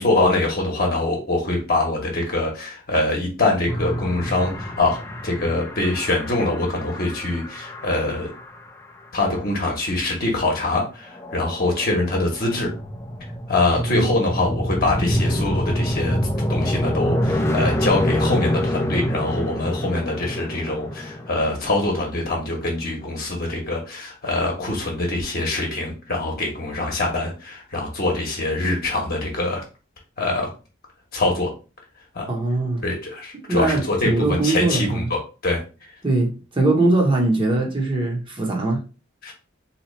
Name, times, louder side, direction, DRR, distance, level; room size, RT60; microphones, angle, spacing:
voice 1, 0.0-5.0 5.2-8.3 9.1-12.7 13.5-16.2 16.5-29.6 30.2-30.5 31.1-31.5 32.1-32.3 32.8-35.6 39.2-39.3, left 2 dB, 50° left, 0 dB, 1.0 m, -24 dB
sound 1, 3.7-8.6 11.1-22.6, equal, 15° left, 0.4 m, -27 dB
voice 2, 13.8-14.1 32.3-32.8 33.5-35.1 36.0-38.8, right 2 dB, 25° right, 1 dB, 0.8 m, -21 dB
2.8 x 2.4 x 4.1 m, 0.33 s
head